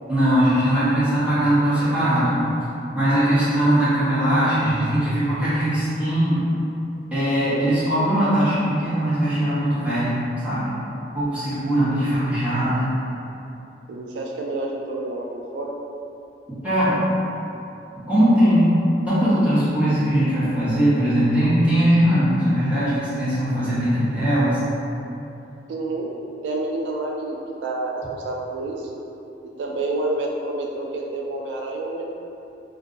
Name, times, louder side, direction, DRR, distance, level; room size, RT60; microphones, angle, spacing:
voice 1, 0.1-2.4 2.9-6.4 7.1-10.8 11.1-12.9 16.6-17.0 18.1-18.8 19.1-24.6, equal, 5° right, -13 dB, 1.0 m, -20 dB
voice 2, 13.9-15.3 15.5-15.7 25.7-26.1 26.4-28.9 29.4-32.1, right 2 dB, 75° right, -1 dB, 0.3 m, -28 dB
2.5 x 2.3 x 3.8 m, 2.8 s
head